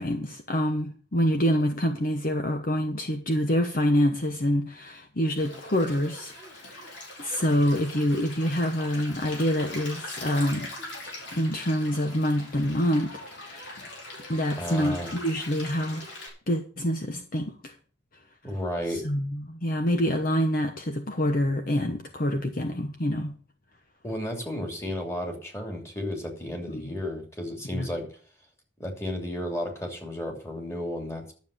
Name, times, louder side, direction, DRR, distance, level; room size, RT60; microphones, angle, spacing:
voice 1, 0.0-6.3 6.6-6.9 7.2-10.7 11.3-13.8 14.3-16.1 16.5-17.7 18.9-23.3 26.7-26.9 27.7-27.9, equal, 45° left, 6 dB, 1.0 m, -26 dB
Stream, 5.4-16.3, left 1 dB, 60° left, 5.2 m, -41 dB
voice 2, 14.6-15.1 18.4-19.0 24.0-28.1 28.8-31.2, left 1 dB, 15° left, 2 dB, 2.8 m, -33 dB
12.0 x 7.4 x 6.6 m, 0.41 s
head